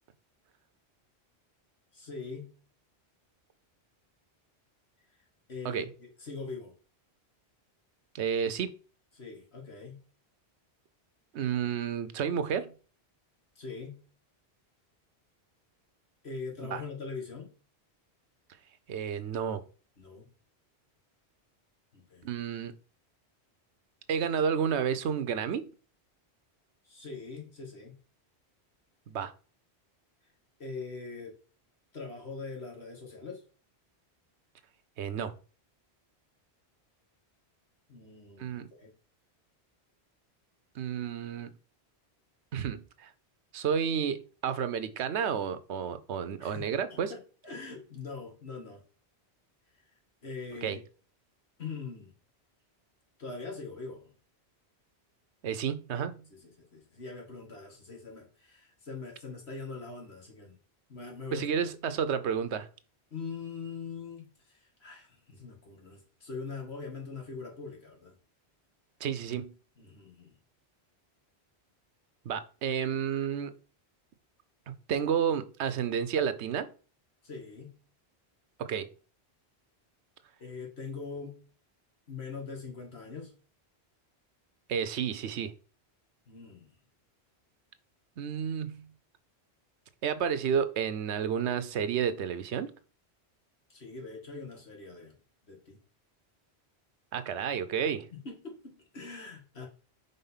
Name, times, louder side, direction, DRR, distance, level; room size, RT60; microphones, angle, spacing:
voice 1, 1.9-2.5 5.5-6.7 9.2-10.0 13.6-14.0 16.2-17.5 20.0-20.3 21.9-22.3 26.8-27.9 30.6-31.3 31.9-33.4 37.9-38.9 46.4-48.8 49.8-49.9 50.2-50.8 51.6-52.1 53.2-54.1 56.3-60.5 60.9-61.7 63.1-68.1 69.8-70.3 77.2-77.7 80.4-81.4 82.1-83.3 86.3-86.7 93.7-95.1 95.5-95.8 98.1-99.7, left 4 dB, 70° left, 2.2 m, -42 dB
voice 2, 8.1-8.7 11.3-12.7 16.6-16.8 18.9-19.6 22.2-22.7 24.1-25.7 29.1-29.3 35.0-35.3 38.4-38.7 40.8-41.5 42.5-43.1 43.5-47.1 50.6-50.8 55.4-56.2 61.3-62.7 69.0-69.5 72.3-73.5 74.9-76.7 78.6-78.9 84.7-85.5 88.2-88.9 90.0-92.7 97.1-98.1, right 7 dB, 85° right, 1.0 m, -31 dB
5.4 x 3.9 x 5.6 m
omnidirectional pair, 1.1 m